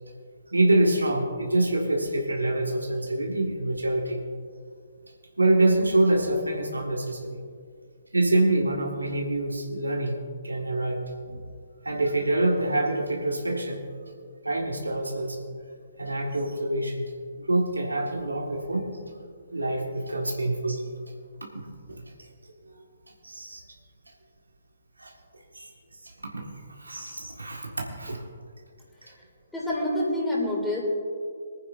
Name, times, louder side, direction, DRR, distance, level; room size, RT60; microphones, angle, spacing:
voice 1, 0.5-4.2 5.4-7.4 8.1-10.2 10.4-11.4 11.8-13.8 14.4-15.4 16.0-17.0 17.4-18.9 19.5-21.0 21.5-22.0 22.6-22.8 23.2-23.6 25.0-25.1 25.5-25.7 26.0-26.5 26.8-28.2, right 2 dB, 85° right, 0 dB, 1.7 m, -26 dB
voice 2, 29.5-30.8, left 1 dB, 5° left, -5 dB, 2.8 m, -27 dB
22.5 x 9.4 x 2.6 m, 2.1 s
figure-of-eight pair, 135°, 0 cm